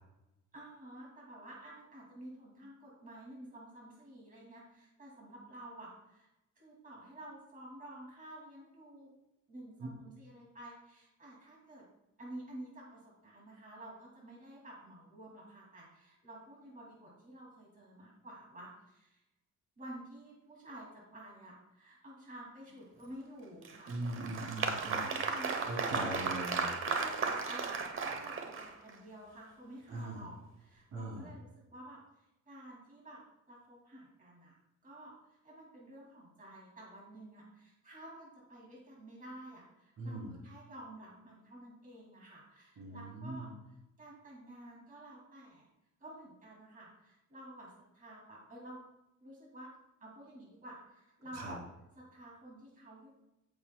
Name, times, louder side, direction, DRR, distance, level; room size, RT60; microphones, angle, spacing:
voice 1, 0.5-6.3 6.6-9.1 9.5-11.8 12.2-19.2 19.8-24.0 25.1-26.1 27.0-33.2 33.5-34.6 34.8-45.7 46.0-48.8 49.2-49.7 50.0-51.6 51.9-53.1, right 1 dB, 25° right, -4 dB, 2.4 m, -51 dB
Applause, 23.6-28.9, right 4 dB, 40° right, 0.9 m, -35 dB
voice 2, 23.9-25.1 25.5-26.6 29.9-30.2 30.9-31.3 40.0-40.3 42.8-43.5 51.3-51.5, right 1 dB, 60° right, -2 dB, 2.9 m, -40 dB
15.0 x 6.9 x 2.2 m, 0.94 s
cardioid pair, 170°, 31 cm